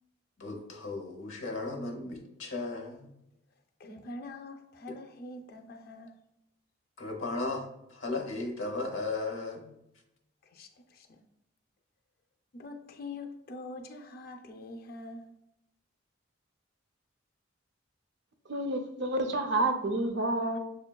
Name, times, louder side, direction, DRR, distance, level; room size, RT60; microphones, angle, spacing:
voice 1, 0.4-3.1 7.0-7.6 7.9-9.8, left 3 dB, 80° left, 0.8 m, -35 dB
voice 2, 3.8-6.2 10.4-11.1 12.5-15.3, left 2 dB, 50° left, 0.4 m, -44 dB
voice 3, 18.5-20.6, right 2 dB, 60° right, 0.5 m, -29 dB
6.5 x 2.2 x 2.2 m
head